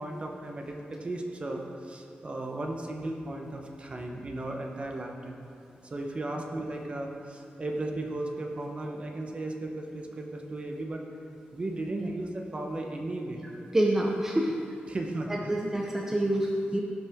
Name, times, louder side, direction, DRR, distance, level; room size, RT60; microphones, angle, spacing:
voice 1, 0.0-5.4 5.8-11.0 11.5-13.5 14.9-15.5, right 2 dB, 30° right, 2 dB, 1.0 m, -35 dB
voice 2, 13.7-14.5 15.3-16.8, right 1 dB, 10° right, -1 dB, 0.7 m, -27 dB
17.0 x 6.1 x 3.6 m, 2.6 s
wide cardioid pair, 150°, 4 cm